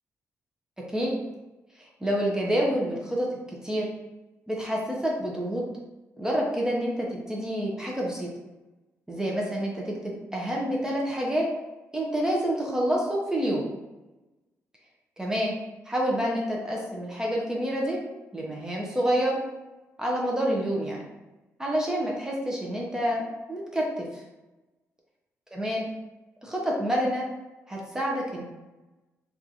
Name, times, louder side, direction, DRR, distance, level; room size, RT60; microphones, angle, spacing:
voice 1, 2.0-3.3 3.6-3.9 4.5-5.6 6.2-8.3 9.1-11.5 11.9-13.6 15.2-15.5 15.9-18.0 18.3-19.4 20.0-21.0 21.6-23.2 23.5-24.2 25.5-25.9 26.4-27.2 27.7-28.4, equal, 10° right, -3 dB, 0.5 m, -28 dB
2.8 x 2.3 x 2.5 m, 1.1 s
cardioid pair, 95°, 6 cm